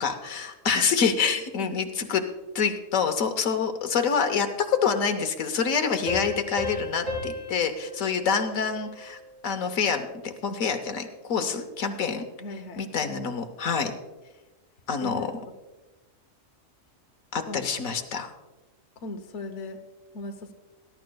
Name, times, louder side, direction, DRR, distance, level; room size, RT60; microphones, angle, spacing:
voice 1, 0.0-2.2 2.5-12.3 12.8-13.9 14.9-15.3 17.3-18.3, left 6 dB, 85° left, 7 dB, 1.3 m, -27 dB
sound 1, 6.1-9.4, left 1 dB, 60° right, 4.1 m, -35 dB
voice 2, 12.4-12.8 15.0-15.3 17.5-17.6 19.0-19.8 20.1-20.5, left 2 dB, 60° left, 6 dB, 1.2 m, -37 dB
20.5 x 11.5 x 2.3 m, 1.2 s
omnidirectional pair, 1.4 m